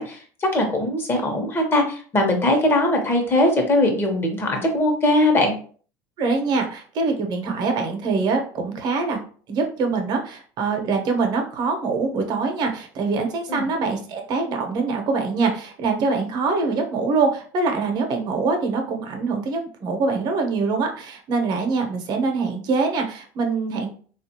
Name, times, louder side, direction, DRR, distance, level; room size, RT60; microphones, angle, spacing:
voice 1, 0.0-5.5 13.5-13.7, left 1 dB, 25° left, 3 dB, 1.0 m, -20 dB
voice 2, 6.2-9.2 9.5-23.9, right 4 dB, 55° right, 4 dB, 0.9 m, -24 dB
3.6 x 2.5 x 2.8 m, 0.43 s
supercardioid pair, 105°, 9 cm